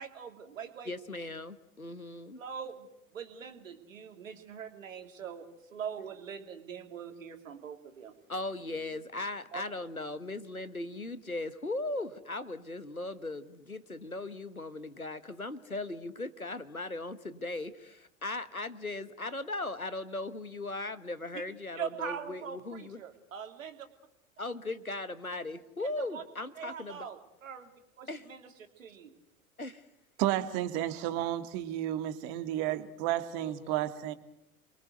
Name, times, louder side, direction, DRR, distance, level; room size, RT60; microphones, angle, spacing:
voice 1, 0.0-0.9 2.4-2.9 3.1-8.1 9.5-9.6 21.3-21.4 21.7-23.9 26.0-26.2 26.6-27.7 28.0-28.5 28.8-29.1, right 7 dB, 65° right, 7 dB, 3.1 m, -42 dB
voice 2, 0.8-2.4 8.3-23.0 24.4-27.1 28.1-28.3 29.6-29.8 33.4-33.9, left 2 dB, 90° left, 13 dB, 1.5 m, -38 dB
voice 3, 30.2-34.1, right 13 dB, 40° right, 11 dB, 2.1 m, -32 dB
29.0 x 23.0 x 8.1 m, 0.79 s
figure-of-eight pair, 90°, 42 cm